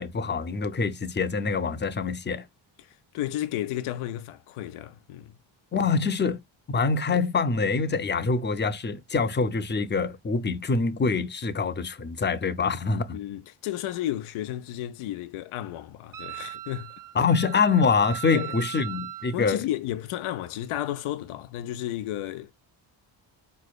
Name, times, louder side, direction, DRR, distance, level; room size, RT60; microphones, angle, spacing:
voice 1, 0.0-2.4 5.7-6.4 6.7-13.2 17.2-19.6, left 4 dB, 25° left, 0.5 m, -25 dB
voice 2, 2.8-5.3 13.1-16.9 18.3-18.6 18.8-18.9 19.3-22.5, left 13 dB, 80° left, 0.6 m, -33 dB
Wind instrument woodwind instrument, 16.1-19.4, right 12 dB, 45° right, 0.5 m, -38 dB
4.1 x 3.2 x 2.3 m
cardioid pair, 60°, 49 cm